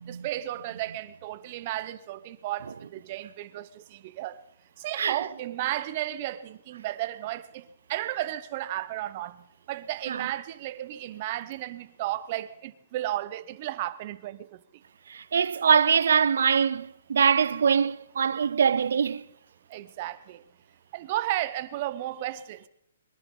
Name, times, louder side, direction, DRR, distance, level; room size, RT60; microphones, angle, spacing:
voice 1, 0.1-4.4 4.8-14.6 19.7-20.4 20.9-22.7, right 14 dB, 40° right, 0.8 m, -34 dB
voice 2, 15.1-19.2, right 7 dB, 75° right, 0.6 m, -23 dB
22.5 x 10.5 x 5.4 m
hypercardioid pair, 155°, 0 cm